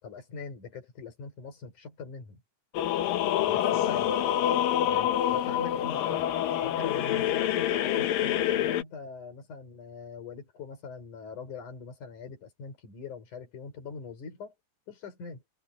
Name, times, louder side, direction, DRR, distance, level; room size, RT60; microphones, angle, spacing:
voice 1, 0.0-2.4 3.4-4.2 4.9-6.3 6.6-14.5 14.9-15.4, left 5 dB, 45° left, 5.7 m, -42 dB
sound 1, 2.7-8.8, left 11 dB, 70° left, 2.3 m, -27 dB
omnidirectional pair, 5.2 m